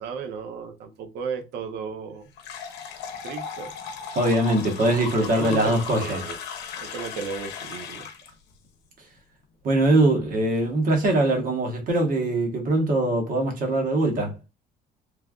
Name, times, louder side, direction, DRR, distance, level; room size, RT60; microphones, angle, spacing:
voice 1, 0.0-2.3 3.2-3.7 5.2-6.4 6.8-8.1, right 6 dB, 80° right, 0.7 m, -34 dB
sound 1, 2.4-8.3, left 6 dB, 90° left, 0.7 m, -36 dB
voice 2, 4.1-6.2 9.6-14.3, right 1 dB, 55° right, 1.2 m, -22 dB
3.2 x 2.3 x 2.3 m
cardioid pair, 110°, 17 cm